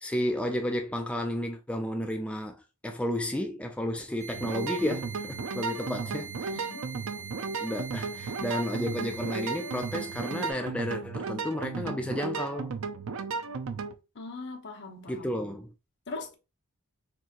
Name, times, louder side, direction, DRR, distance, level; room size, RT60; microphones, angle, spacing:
voice 1, 0.0-6.5 7.6-12.7 15.1-15.7, equal, 5° left, 0.3 m, -32 dB
sound 1, 4.2-10.5, right 6 dB, 30° right, 1.2 m, -43 dB
sound 2, 4.3-13.9, right 4 dB, 65° right, 0.5 m, -35 dB
voice 2, 14.2-15.3 16.1-16.3, left 3 dB, 55° left, 0.9 m, -40 dB
4.3 x 2.6 x 2.8 m
head